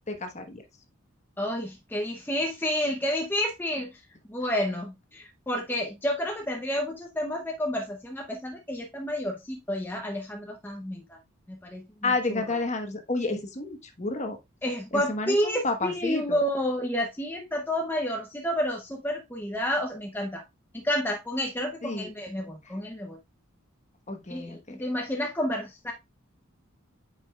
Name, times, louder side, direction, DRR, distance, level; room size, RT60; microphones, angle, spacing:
voice 1, 0.1-0.6 12.0-14.4 14.9-16.4 21.8-22.1 24.1-24.6, left 2 dB, 35° left, 1.1 m, -30 dB
voice 2, 1.4-4.0 4.3-11.2 11.5-12.6 14.6-20.4 20.7-23.2 24.3-25.9, equal, 10° left, 0.6 m, -30 dB
8.9 x 4.9 x 2.3 m
head